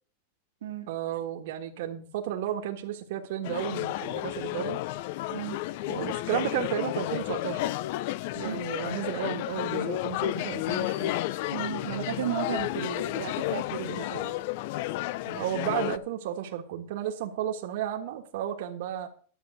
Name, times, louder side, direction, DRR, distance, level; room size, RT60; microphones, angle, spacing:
voice 1, 0.9-4.8 5.9-7.7 8.3-11.2 15.3-19.1, right 10 dB, 55° right, 1.5 m, -33 dB
sound 1, 3.4-16.0, left 16 dB, 45° left, 0.4 m, -32 dB
voice 2, 11.5-14.3, right 10 dB, 85° right, 1.8 m, -34 dB
11.5 x 7.9 x 6.4 m
supercardioid pair, 165°, 0 cm